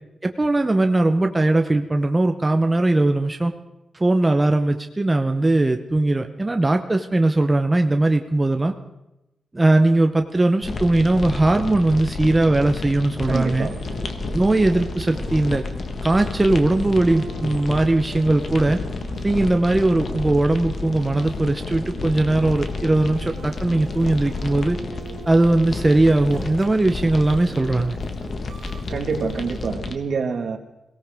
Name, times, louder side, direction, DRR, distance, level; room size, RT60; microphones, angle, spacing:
voice 1, 0.2-3.5 3.9-8.7 9.5-13.7 14.3-15.6 16.0-18.8 19.2-24.8 25.3-28.0, right 2 dB, 20° right, 5 dB, 0.8 m, -19 dB
sound 1, 10.6-29.9, left 3 dB, 50° left, 1.4 m, -31 dB
voice 2, 13.2-13.8 28.9-30.6, right 5 dB, 60° right, 6 dB, 1.6 m, -26 dB
sound 2, 13.5-29.7, right 5 dB, 85° right, 1.8 m, -42 dB
22.5 x 17.5 x 3.6 m, 0.94 s
cardioid pair, 100°, 0 cm